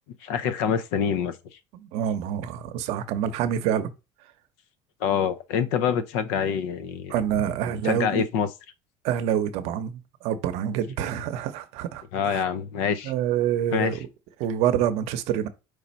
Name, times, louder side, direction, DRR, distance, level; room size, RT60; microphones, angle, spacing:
voice 1, 0.2-1.3 5.0-7.1 7.8-8.5 12.1-13.1 13.7-13.9, left 7 dB, 90° left, 0.6 m, -25 dB
voice 2, 1.7-3.9 7.1-8.3 9.0-12.4 13.0-14.0 14.4-15.5, right 9 dB, 70° right, 0.7 m, -27 dB
4.8 x 2.6 x 4.2 m
cardioid pair, 150°, 11 cm